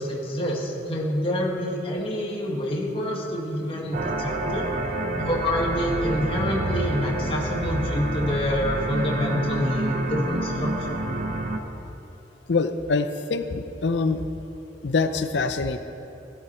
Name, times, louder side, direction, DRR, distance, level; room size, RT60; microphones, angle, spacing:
voice 1, 0.0-4.7 5.1-11.0, left 1 dB, 30° left, -2 dB, 1.7 m, -27 dB
sound 1, 3.9-11.6, right 1 dB, 45° right, 0.9 m, -28 dB
voice 2, 12.5-14.2 14.8-15.8, left 4 dB, 85° left, 9 dB, 0.6 m, -24 dB
15.5 x 11.5 x 4.5 m, 3.0 s
head